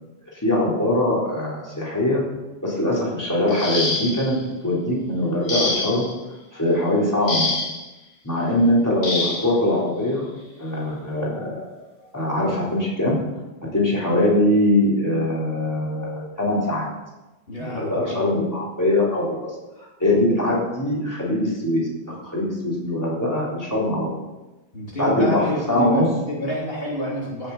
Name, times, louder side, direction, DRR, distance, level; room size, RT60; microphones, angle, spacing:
voice 1, 0.3-2.2 2.6-6.0 6.5-7.5 8.2-10.3 10.6-11.7 12.1-13.2 13.7-16.8 17.6-19.4 19.8-24.1 25.0-26.1, left 1 dB, 15° left, -5 dB, 3.7 m, -22 dB
sound 1, 3.5-4.4 5.5-6.1 7.3-7.9 9.0-9.5 10.7-10.8 11.4-11.6, left 2 dB, 90° left, 2.2 m, -26 dB
voice 2, 17.5-18.4 24.7-27.5, equal, 65° left, -4 dB, 2.9 m, -29 dB
17.0 x 6.9 x 5.5 m, 1.1 s
omnidirectional pair, 1.1 m